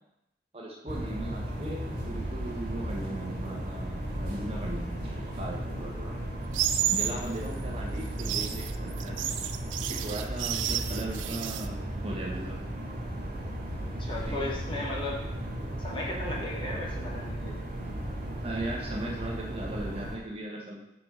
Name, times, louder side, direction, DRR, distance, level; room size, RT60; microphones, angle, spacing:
voice 1, 0.5-6.1 6.9-9.3 9.9-12.6 14.2-14.5 18.4-20.8, right 1 dB, 30° right, -2 dB, 1.0 m, -38 dB
sound 1, 0.9-20.2, right 1 dB, 50° right, 1.6 m, -35 dB
sound 2, 6.5-7.2 8.0-11.7, right 11 dB, 80° right, 0.4 m, -31 dB
voice 2, 14.0-15.2 15.8-17.5, left 2 dB, 25° left, -2 dB, 1.1 m, -35 dB
5.9 x 4.6 x 5.1 m, 0.90 s
head